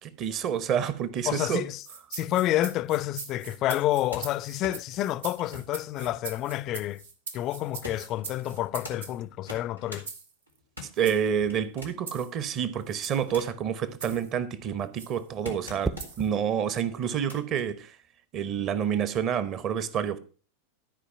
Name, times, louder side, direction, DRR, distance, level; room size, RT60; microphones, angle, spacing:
voice 1, 0.0-1.7 11.0-18.0 18.3-20.2, right 8 dB, 35° right, 0.9 m, -28 dB
voice 2, 1.3-1.8 2.1-7.0 7.3-10.1, left 14 dB, 35° left, 0.4 m, -29 dB
sound 1, 1.8-9.2 10.1-10.3 11.0-11.2 12.1-12.3 12.9-13.2 14.0-14.3 15.0-15.2 16.0-16.3, right 5 dB, 65° right, 1.3 m, -42 dB
sound 2, 3.7-7.1 7.8-9.0 9.4-10.1 10.5-12.1 12.8-13.7 14.3-16.3 17.0-17.7 18.7-18.8, left 2 dB, 90° right, 2.6 m, -45 dB
sound 3, 15.8-16.4 18.3-18.6, right 3 dB, 15° right, 0.5 m, -35 dB
12.5 x 4.9 x 5.8 m
figure-of-eight pair, 90°, 0 cm